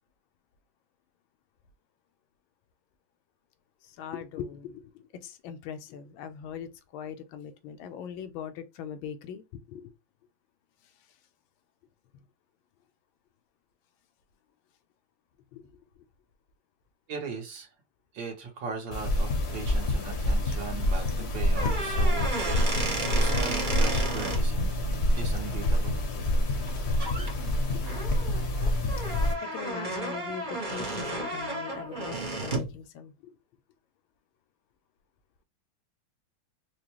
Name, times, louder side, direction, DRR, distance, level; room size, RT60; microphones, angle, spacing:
voice 1, 3.8-9.9 10.8-10.9 15.5-16.0 27.2-27.3 29.1-33.4, left 8 dB, 80° left, 1.4 m, -41 dB
voice 2, 17.1-17.7 18.1-21.1 21.3-24.9 25.2-26.0, right 4 dB, 70° right, 1.8 m, -39 dB
sound 1, 18.9-29.3, left 1 dB, 50° left, 0.9 m, -27 dB
sound 2, 21.5-24.4 26.5-26.7 27.0-27.3 27.8-32.7, right 2 dB, 45° right, 0.6 m, -33 dB
4.8 x 2.2 x 2.9 m
omnidirectional pair, 2.2 m